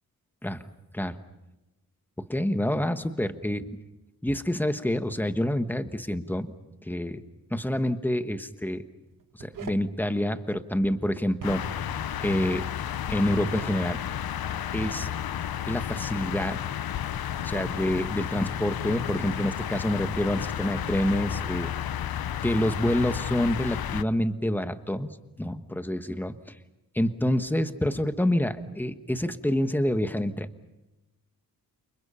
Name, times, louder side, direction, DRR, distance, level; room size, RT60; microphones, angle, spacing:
voice 1, 2.3-3.7 4.2-6.5 6.8-7.2 7.5-8.8 9.4-11.7 12.2-12.7 13.1-14.0 14.7-15.1 15.6-16.6 17.4-21.7 22.4-25.1 25.4-26.6 26.9-30.5, left 1 dB, 5° left, 9 dB, 1.4 m, -27 dB
sound 1, 9.1-9.9 11.3-11.9 13.1-13.6 15.4-16.0 17.1-17.7, right 7 dB, 60° right, 1.5 m, -45 dB
sound 2, 11.4-24.0, left 10 dB, 80° left, 0.9 m, -32 dB
29.5 x 29.0 x 5.7 m, 1.0 s
wide cardioid pair, 145°, 36 cm